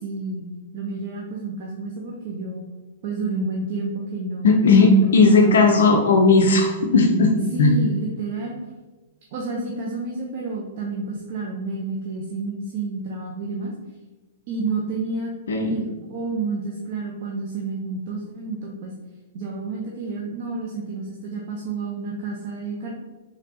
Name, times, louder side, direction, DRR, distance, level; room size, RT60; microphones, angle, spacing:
voice 1, 0.0-0.5 0.7-2.6 3.0-5.8 7.5-8.5 9.3-13.7 14.5-15.3 15.6-18.9 19.3-22.9, right 3 dB, 45° right, -1 dB, 0.5 m, -30 dB
voice 2, 4.4-7.3 7.6-7.8 15.5-15.8, left 3 dB, 60° left, 2 dB, 0.4 m, -16 dB
4.1 x 3.0 x 2.6 m, 1.2 s
figure-of-eight pair, 105°, 0 cm